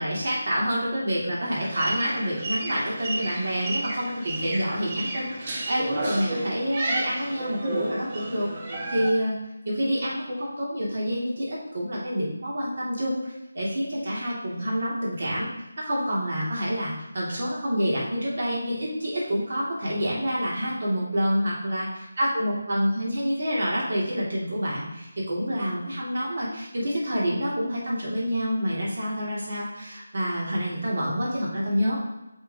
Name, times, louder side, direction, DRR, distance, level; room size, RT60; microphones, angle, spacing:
voice 1, 0.0-8.5 8.9-9.4 9.7-15.5 15.8-21.9 22.2-32.0, equal, 55° right, -6 dB, 2.2 m, -27 dB
sound 1, 1.5-9.1, right 2 dB, 30° right, 1.0 m, -32 dB
7.3 x 4.9 x 2.8 m, 0.96 s
figure-of-eight pair, 170°, 0 cm